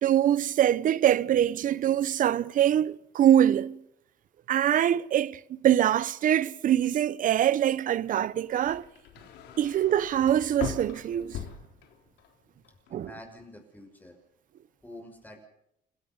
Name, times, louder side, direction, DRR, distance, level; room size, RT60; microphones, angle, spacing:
voice 1, 0.0-3.8 4.5-8.8 9.6-11.4 12.9-13.1, right 11 dB, 55° right, 0.8 m, -24 dB
sound 1, 8.0-12.3 12.6-13.2, left 8 dB, 80° left, 3.6 m, -40 dB
voice 2, 12.9-14.2 14.8-15.5, left 1 dB, 10° left, 5.7 m, -47 dB
29.5 x 17.0 x 5.4 m
cardioid pair, 110°, 17 cm